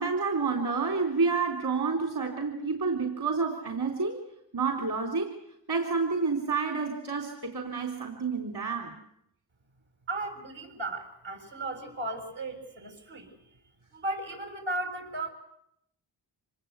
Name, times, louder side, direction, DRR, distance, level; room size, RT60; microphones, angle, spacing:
voice 1, 0.0-4.2 4.5-5.4 5.7-9.0, right 4 dB, 55° right, 3 dB, 4.0 m, -29 dB
voice 2, 10.1-13.4 13.9-15.3, right 2 dB, 75° right, 4 dB, 6.8 m, -35 dB
26.0 x 20.5 x 8.3 m, 0.79 s
supercardioid pair, 50°, 47 cm